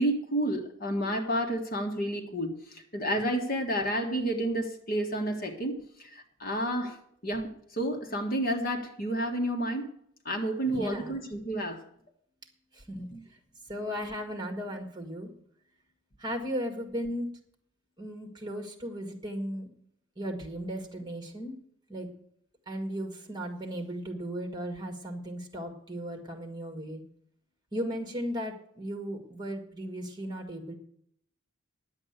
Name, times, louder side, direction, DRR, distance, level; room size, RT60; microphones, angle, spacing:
voice 1, 0.0-7.0 7.2-9.9 10.2-11.8 13.1-13.2, right 1 dB, 45° left, 3 dB, 1.6 m, -30 dB
voice 2, 10.7-11.1 12.7-13.1 13.7-15.3 16.2-17.3 18.0-19.7 20.1-21.5 21.9-22.1 22.6-27.0 27.7-30.7, equal, 20° right, 3 dB, 1.8 m, -36 dB
10.5 x 7.8 x 7.9 m, 0.67 s
head